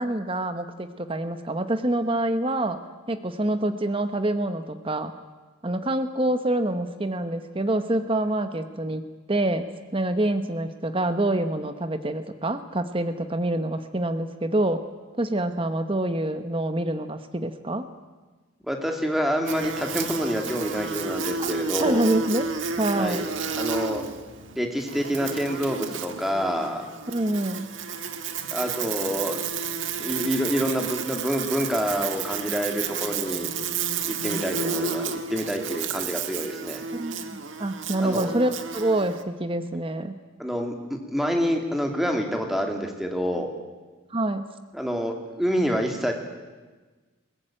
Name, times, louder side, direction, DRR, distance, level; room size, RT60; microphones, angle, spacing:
voice 1, 0.0-2.8 3.1-5.1 5.6-9.0 9.3-14.8 15.2-17.9 21.4-21.5 21.8-22.5 22.8-23.3 27.1-27.7 36.9-40.2 44.1-44.5, right 1 dB, 25° right, 9 dB, 1.1 m, -26 dB
voice 2, 18.7-22.1 22.9-23.3 23.6-24.0 24.5-26.8 28.5-29.4 30.0-33.5 34.2-36.8 38.0-38.3 40.4-43.5 44.7-46.1, equal, ahead, 3 dB, 2.6 m, -27 dB
Buzz, 19.5-39.2, right 5 dB, 70° right, 1.5 m, -31 dB
21.5 x 19.0 x 9.0 m, 1.3 s
head